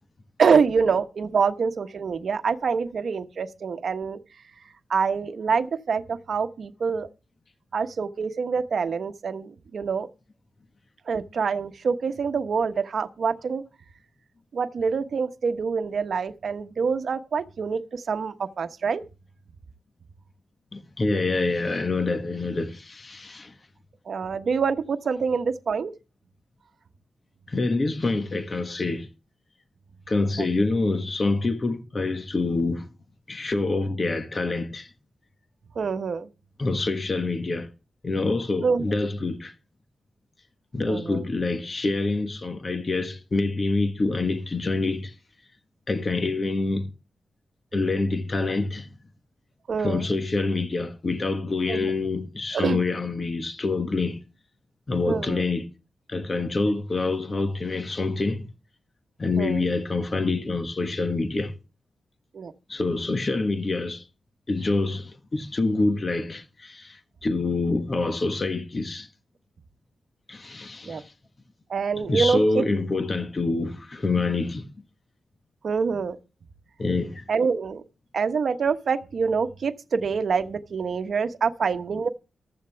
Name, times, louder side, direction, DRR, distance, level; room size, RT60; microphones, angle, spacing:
voice 1, 0.4-4.2 4.9-7.1 7.7-10.1 11.1-13.6 14.5-19.0 24.1-25.9 35.7-36.3 38.6-38.8 40.9-41.2 49.7-50.0 51.7-51.9 52.5-52.8 55.1-55.4 59.4-59.6 62.3-62.5 70.9-71.0 71.7-72.6 75.6-76.2 77.3-77.8 78.1-82.1, right 5 dB, 55° right, 1.2 m, -25 dB
voice 2, 20.7-23.5 27.5-29.1 30.1-32.9 33.3-34.9 36.6-37.7 38.0-39.5 40.7-45.1 45.9-46.9 47.7-48.9 49.8-54.2 54.9-55.7 56.1-58.5 59.2-61.6 62.7-64.0 64.5-69.1 70.3-71.1 72.1-74.7 76.8-77.3, left 3 dB, 30° left, 1.3 m, -26 dB
15.0 x 11.5 x 3.4 m
wide cardioid pair, 135°, 0 cm